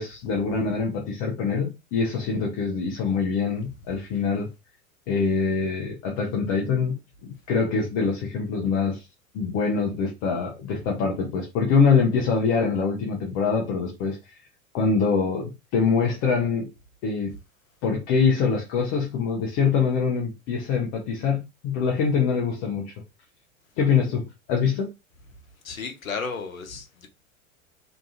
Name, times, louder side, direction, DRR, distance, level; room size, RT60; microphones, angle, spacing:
voice 1, 0.0-4.5 5.1-7.0 7.2-9.0 9.3-14.4 14.7-16.7 17.0-17.3 17.8-22.9 23.8-24.9, left 5 dB, 20° left, 0.3 m, -24 dB
voice 2, 25.6-27.1, left 5 dB, 75° left, 0.7 m, -33 dB
2.7 x 2.3 x 2.5 m
figure-of-eight pair, 85°, 41 cm